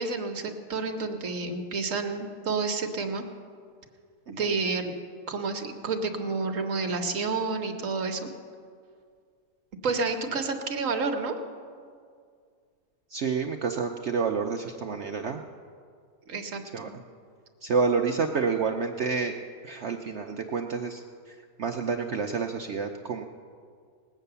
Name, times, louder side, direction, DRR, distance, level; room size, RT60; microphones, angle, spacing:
voice 1, 0.0-3.2 4.3-4.9 5.3-8.3 9.8-11.4 16.3-16.9, right 4 dB, 55° right, 5 dB, 1.2 m, -30 dB
voice 2, 13.1-15.4 16.7-16.9 17.6-19.4 19.6-23.2, right 5 dB, 70° right, 3 dB, 0.6 m, -29 dB
19.0 x 8.3 x 6.8 m, 2.2 s
omnidirectional pair, 1.9 m